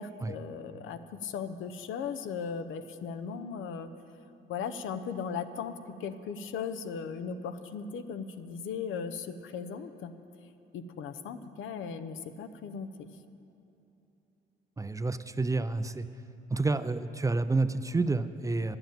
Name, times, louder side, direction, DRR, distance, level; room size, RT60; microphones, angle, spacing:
voice 1, 0.0-3.9 4.5-5.7 6.0-10.1 10.7-13.1, left 6 dB, 80° left, 10 dB, 0.7 m, -37 dB
voice 2, 14.8-16.1 16.5-18.8, right 3 dB, 15° right, 12 dB, 0.4 m, -29 dB
10.0 x 8.0 x 8.9 m, 2.9 s
cardioid pair, 90°, 20 cm